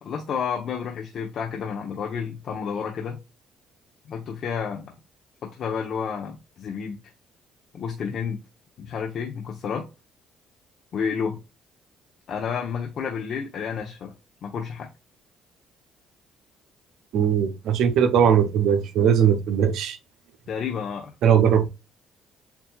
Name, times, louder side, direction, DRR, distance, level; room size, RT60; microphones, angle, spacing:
voice 1, 0.0-3.2 4.1-4.9 5.4-7.0 7.7-8.4 8.8-9.9 10.9-11.4 12.3-14.1 14.4-14.9 20.5-21.1, left 6 dB, 60° left, 1.0 m, -30 dB
voice 2, 17.1-20.0 21.2-21.7, right 8 dB, 75° right, 0.8 m, -19 dB
7.4 x 2.6 x 2.4 m
supercardioid pair, 70°, 0 cm